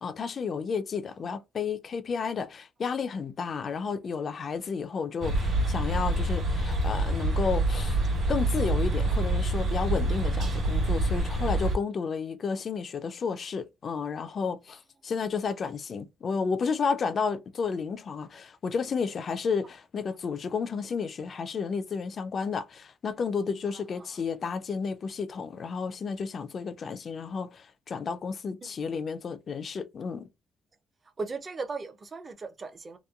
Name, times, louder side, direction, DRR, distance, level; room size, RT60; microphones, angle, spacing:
voice 1, 0.0-8.0 8.3-30.3, left 5 dB, 50° left, 0.4 m, -32 dB
sound 1, 5.2-11.8, right 1 dB, 60° right, 1.1 m, -26 dB
voice 2, 23.7-24.2 28.6-28.7 31.2-33.0, right 4 dB, 35° right, 0.5 m, -38 dB
2.9 x 2.2 x 2.3 m
cardioid pair, 90°, 0 cm